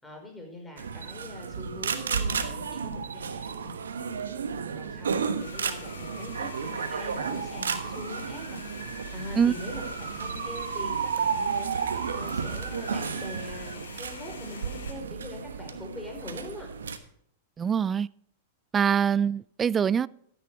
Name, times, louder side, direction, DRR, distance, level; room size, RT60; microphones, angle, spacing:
voice 1, 0.0-3.7 4.7-8.6 9.1-16.7, left 1 dB, 10° left, 1 dB, 5.0 m, -42 dB
sound 1, 0.8-17.0, right 6 dB, 85° right, 1.2 m, -32 dB
sound 2, 5.4-14.9, left 4 dB, 80° left, 3.7 m, -45 dB
voice 2, 17.6-18.1 18.7-20.1, right 7 dB, 25° right, 22 dB, 0.4 m, -24 dB
13.5 x 9.4 x 4.9 m, 0.68 s
hypercardioid pair, 110°, 0 cm